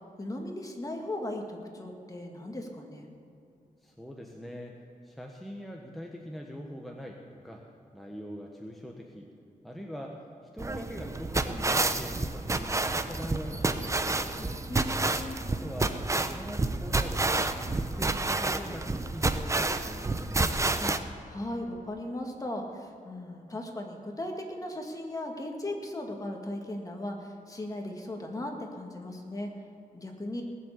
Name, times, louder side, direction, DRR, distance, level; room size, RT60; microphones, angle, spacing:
voice 1, 0.2-3.1 14.7-15.5 20.8-20.9 21.3-29.5 29.9-30.4, left 1 dB, 25° left, 2 dB, 2.1 m, -37 dB
voice 2, 3.8-4.8 5.0-7.6 7.9-9.3 9.6-10.3 10.5-14.6 15.5-20.8, equal, ahead, 0 dB, 1.2 m, -43 dB
sound 1, 10.6-21.0, right 2 dB, 20° right, 0.7 m, -29 dB
19.0 x 7.7 x 8.2 m, 2.7 s
wide cardioid pair, 120°, 14 cm